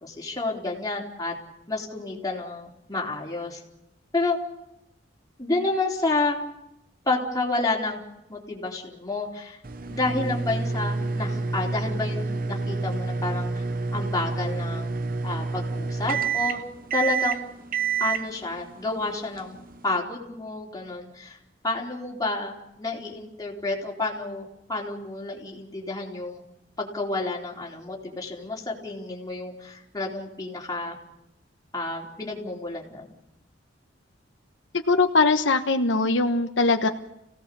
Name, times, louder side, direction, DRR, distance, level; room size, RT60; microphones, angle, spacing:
voice 1, 0.0-1.3 1.7-3.6 4.1-4.4 5.4-6.4 7.1-8.0 8.3-9.6 9.9-13.6 13.9-14.9 15.2-16.6 16.9-17.5 18.0-19.6 19.8-21.4 21.6-26.4 26.8-31.0 31.7-33.1, left 2 dB, 20° left, -2 dB, 4.0 m, -30 dB
sound 1, 9.6-20.0, right 4 dB, 50° right, 0.9 m, -29 dB
voice 2, 34.9-36.9, left 3 dB, 85° left, 6 dB, 1.3 m, -21 dB
27.5 x 17.5 x 7.0 m, 0.86 s
head